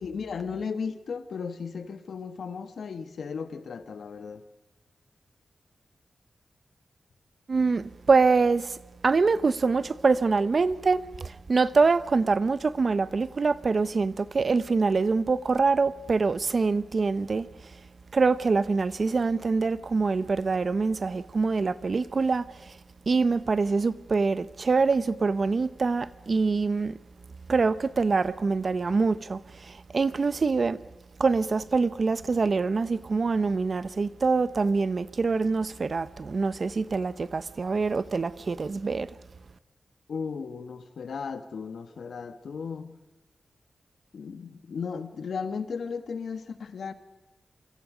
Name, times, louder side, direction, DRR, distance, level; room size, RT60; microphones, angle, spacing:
voice 1, 0.0-4.4 40.1-42.9 44.1-46.9, left 5 dB, 80° left, 1.6 m, -35 dB
voice 2, 7.5-8.8 9.0-17.8 18.1-22.8 23.1-27.0 27.5-30.8 31.2-39.2, right 4 dB, 45° right, 0.8 m, -25 dB
28.0 x 26.0 x 5.1 m
wide cardioid pair, 115°, 0 cm